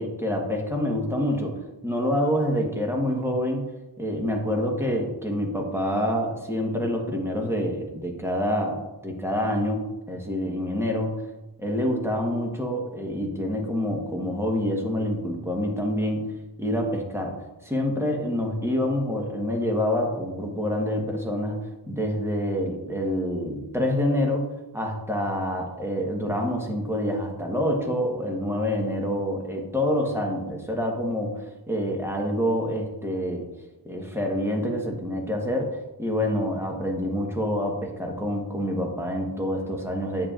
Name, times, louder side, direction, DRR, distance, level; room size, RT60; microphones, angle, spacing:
voice 1, 0.0-3.6 4.0-11.1 11.6-16.2 16.6-17.4 17.6-21.6 21.9-24.5 24.7-31.4 31.7-33.5 33.8-40.3, equal, 5° right, 0 dB, 1.2 m, -27 dB
7.8 x 7.4 x 2.5 m, 1.0 s
wide cardioid pair, 115°, 45 cm